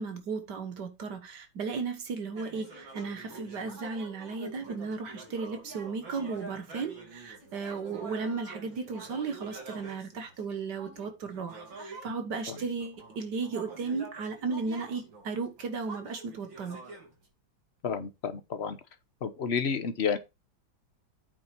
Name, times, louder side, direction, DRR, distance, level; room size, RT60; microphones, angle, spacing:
voice 1, 0.0-16.8, right 4 dB, 60° right, 1.9 m, -35 dB
sound 1, 2.3-12.1 12.5-17.3, right 3 dB, 85° right, 3.9 m, -46 dB
voice 2, 17.8-18.8 19.2-20.2, left 6 dB, 45° left, 0.9 m, -30 dB
8.7 x 4.1 x 5.8 m
omnidirectional pair, 2.1 m